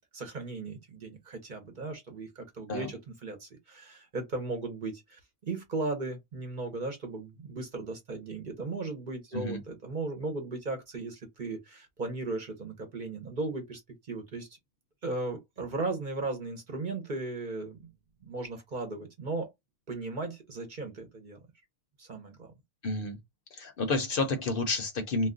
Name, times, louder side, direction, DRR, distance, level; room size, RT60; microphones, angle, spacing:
voice 1, 0.0-13.8 14.1-14.5 15.0-17.9 18.2-19.5 19.9-21.4 22.0-22.5, right 3 dB, 45° right, 0.8 m, -36 dB
voice 2, 22.8-23.2 23.5-25.3, left 2 dB, 55° left, 0.8 m, -30 dB
2.4 x 2.2 x 3.6 m
omnidirectional pair, 1.2 m